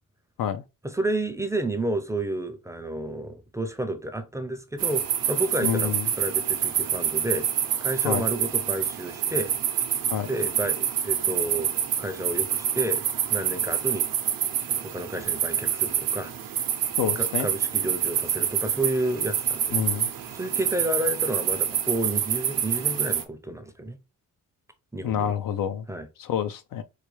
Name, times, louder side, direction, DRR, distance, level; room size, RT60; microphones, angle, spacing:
voice 1, 0.8-7.4 7.8-9.5 10.3-11.7 12.0-13.0 13.3-14.1 14.7-16.3 17.2-19.9 20.3-24.0 24.9-25.3 25.9-26.1, right 1 dB, 10° right, 0.5 m, -30 dB
sound 1, 4.8-23.2, right 9 dB, 75° right, 0.7 m, -27 dB
voice 2, 5.6-6.1 8.0-8.3 10.1-10.3 17.0-17.5 19.7-20.1 25.0-25.9 26.2-26.8, left 9 dB, 75° left, 0.5 m, -27 dB
4.7 x 2.2 x 3.1 m
cardioid pair, 110°, 34 cm